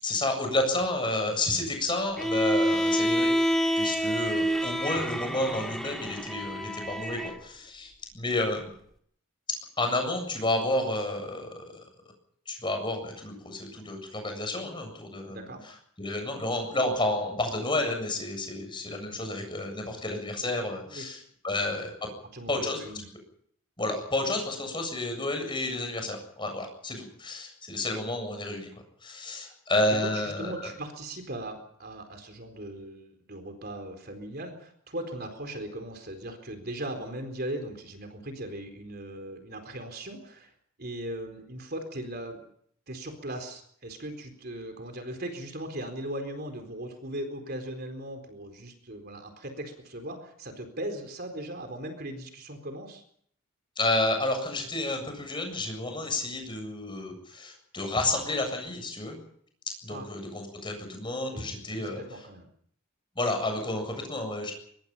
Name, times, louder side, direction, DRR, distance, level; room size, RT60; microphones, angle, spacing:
voice 1, 0.0-8.7 9.8-11.8 12.5-15.5 16.0-22.1 22.5-22.8 23.8-28.7 29.0-30.7 53.8-59.2 59.8-62.0 63.2-64.5, left 2 dB, 20° left, 5 dB, 7.6 m, -30 dB
Bowed string instrument, 2.2-7.4, equal, ahead, 2.1 m, -27 dB
voice 2, 15.3-15.6 20.9-21.1 21.6-21.8 22.3-23.1 30.0-40.5 40.8-42.5 42.9-53.0 59.9-60.1 61.3-62.5, right 1 dB, 45° right, 6 dB, 4.2 m, -38 dB
24.5 x 22.5 x 5.7 m, 0.65 s
head